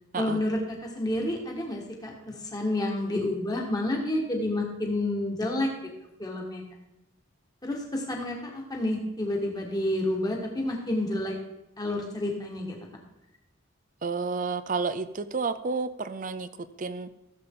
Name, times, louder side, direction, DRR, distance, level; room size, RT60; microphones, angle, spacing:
voice 1, 0.1-5.7 6.2-6.6 7.6-11.3 11.8-12.8, left 1 dB, 20° left, 0 dB, 1.7 m, -29 dB
voice 2, 14.0-17.1, right 4 dB, 40° right, 13 dB, 0.4 m, -31 dB
15.5 x 7.4 x 3.8 m, 0.91 s
head